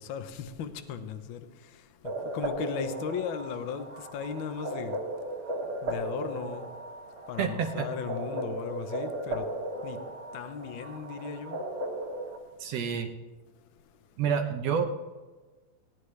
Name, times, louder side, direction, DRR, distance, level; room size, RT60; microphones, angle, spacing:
voice 1, 0.0-5.0 5.8-6.7 7.3-11.6, left 7 dB, 85° left, 1.1 m, -37 dB
sound 1, 2.0-12.4, right 1 dB, 50° right, 2.4 m, -36 dB
voice 2, 7.4-7.9 12.6-13.1 14.2-14.9, right 7 dB, 70° right, 1.7 m, -28 dB
19.0 x 10.5 x 3.2 m
omnidirectional pair, 3.4 m